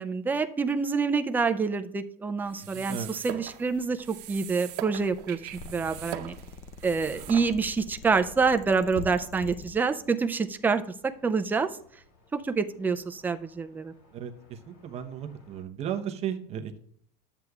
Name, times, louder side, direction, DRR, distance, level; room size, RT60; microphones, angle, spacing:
voice 1, 0.0-5.4 5.6-6.3 6.8-10.8 11.2-11.7 12.3-13.9, right 4 dB, 10° right, 7 dB, 0.4 m, -27 dB
sound 1, 2.4-7.9, right 13 dB, 80° right, 0.8 m, -41 dB
voice 2, 2.7-3.1 14.1-16.8, right 9 dB, 30° right, 5 dB, 0.9 m, -35 dB
sound 2, 3.4-15.6, left 3 dB, 80° left, 3.0 m, -51 dB
sound 3, 5.4-9.7, left 3 dB, 35° left, 0.6 m, -46 dB
12.5 x 7.8 x 2.4 m, 0.64 s
cardioid pair, 160°, 20 cm